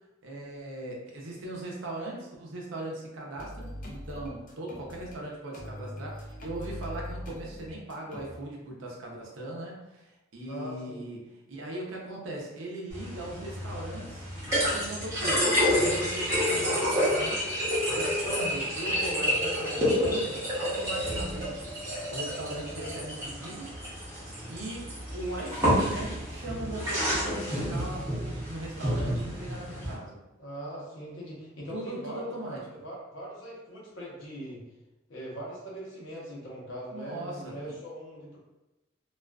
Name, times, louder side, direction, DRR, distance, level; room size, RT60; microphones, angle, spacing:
voice 1, 0.2-14.3 14.6-17.4 17.7-21.8 22.1-23.8 24.5-30.2 31.7-32.7 36.9-37.8, right 1 dB, 70° right, -2 dB, 0.6 m, -39 dB
sound 1, 3.4-5.2 5.5-8.3, left 1 dB, 40° left, 0.4 m, -41 dB
voice 2, 10.5-11.0 30.4-34.6 35.1-38.4, right 1 dB, 70° left, -4 dB, 0.8 m, -41 dB
fill-metal-bottle, 12.9-29.9, equal, 15° right, 0.8 m, -29 dB
2.3 x 2.3 x 2.2 m, 1.0 s
head